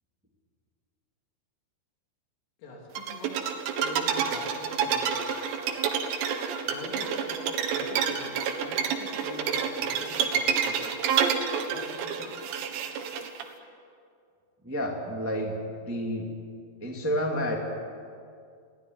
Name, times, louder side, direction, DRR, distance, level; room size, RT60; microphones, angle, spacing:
voice 1, 2.6-5.3 6.7-7.4 7.7-11.0 11.7-12.4, left 1 dB, 85° left, -2 dB, 5.6 m, -44 dB
sound 1, 3.0-13.4, right 7 dB, 70° right, 3.7 m, -28 dB
voice 2, 14.6-15.5 15.8-16.2 16.8-17.6, equal, 10° right, 0 dB, 0.8 m, -29 dB
23.0 x 17.0 x 9.8 m, 2.3 s
omnidirectional pair, 5.6 m